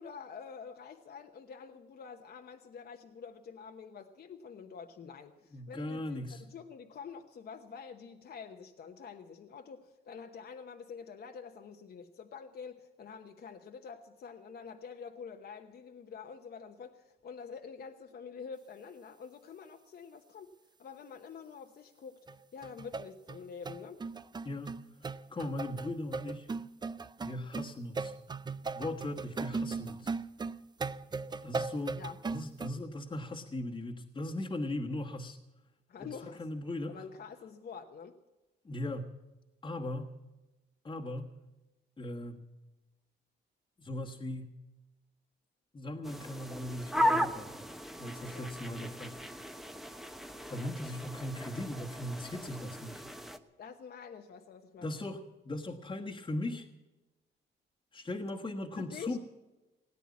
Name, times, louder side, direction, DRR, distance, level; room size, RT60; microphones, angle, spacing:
voice 1, 0.0-20.5 20.8-22.2 22.5-24.0 32.0-32.2 35.9-36.5 36.9-38.2 48.3-48.5 53.6-55.0 58.7-59.2, left 6 dB, 55° left, 5 dB, 1.0 m, -47 dB
voice 2, 5.5-6.4 24.4-24.8 25.3-26.5 27.2-28.1 28.7-30.1 31.4-32.0 32.3-35.4 36.0-37.0 38.6-39.1 39.6-40.2 40.8-41.4 42.0-42.4 43.8-44.6 45.7-47.7 48.0-49.2 50.5-53.0 54.8-56.7 57.9-59.2, left 1 dB, 25° left, -1 dB, 1.4 m, -38 dB
sound 1, 22.3-22.4 22.6-32.7, right 4 dB, 20° right, 0.5 m, -38 dB
sound 2, 46.0-53.4, equal, ahead, 0.9 m, -36 dB
18.0 x 9.1 x 8.4 m, 1.1 s
cardioid pair, 90°, 20 cm